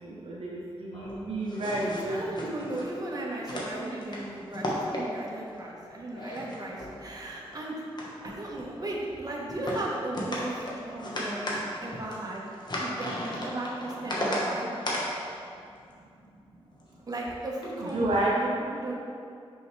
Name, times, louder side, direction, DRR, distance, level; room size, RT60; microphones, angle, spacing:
voice 1, 0.0-2.2 17.8-18.3, right 1 dB, 75° right, -4 dB, 0.8 m, -30 dB
sound 1, 0.9-2.8 3.4-4.2 4.5-5.4 5.8-7.6 7.9-8.6 9.5-9.8 10.1-14.4 14.8-15.0 16.8-17.0 17.6-17.9, left 1 dB, 45° left, 1.2 m, -35 dB
voice 2, 1.8-7.8 8.2-12.4 12.8-14.7 17.1-19.0, right 2 dB, 40° right, -4 dB, 1.2 m, -36 dB
5.5 x 5.5 x 3.3 m, 2.4 s
cardioid pair, 70°, 10 cm